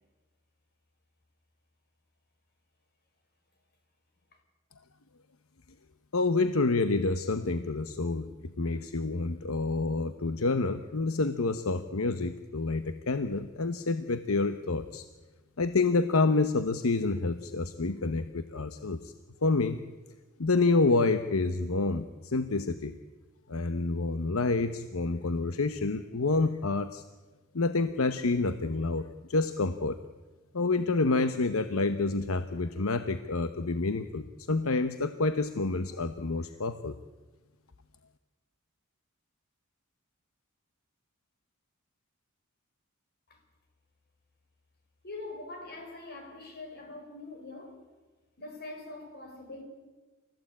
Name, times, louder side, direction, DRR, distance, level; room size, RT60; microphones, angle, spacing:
voice 1, 6.1-15.1 15.6-19.1 19.4-19.8 20.4-22.9 23.5-27.0 27.5-30.0 30.5-37.0, left 3 dB, 75° left, 0.9 m, -28 dB
voice 2, 45.0-47.8 48.4-49.6, left 2 dB, 50° left, 5.9 m, -43 dB
29.0 x 14.5 x 8.6 m
head